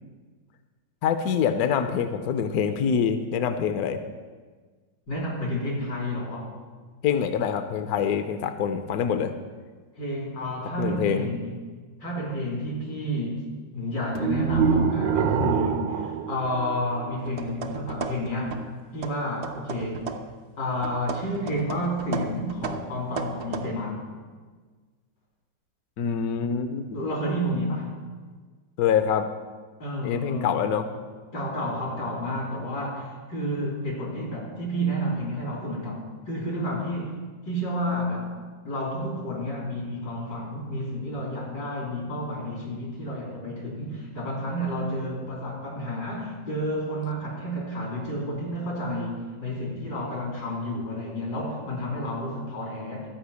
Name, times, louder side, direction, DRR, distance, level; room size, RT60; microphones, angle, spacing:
voice 1, 1.0-4.0 7.0-9.3 10.8-11.3 26.0-26.8 28.8-29.3 30.0-30.9, left 7 dB, 65° left, 9 dB, 1.0 m, -25 dB
voice 2, 5.1-6.6 10.0-11.5 12.0-13.5 13.7-18.7 18.9-20.1 20.6-24.0 26.9-27.9 29.8-30.8 31.3-37.1 37.5-38.3 38.6-53.1, equal, 85° left, -3 dB, 4.0 m, -30 dB
sound 1, 14.2-17.3, right 6 dB, 90° right, 1.4 m, -25 dB
sound 2, 17.2-18.7 19.0-20.4 20.8-23.7, right 5 dB, 60° right, 0.7 m, -35 dB
13.0 x 5.6 x 8.2 m, 1.4 s
omnidirectional pair, 2.0 m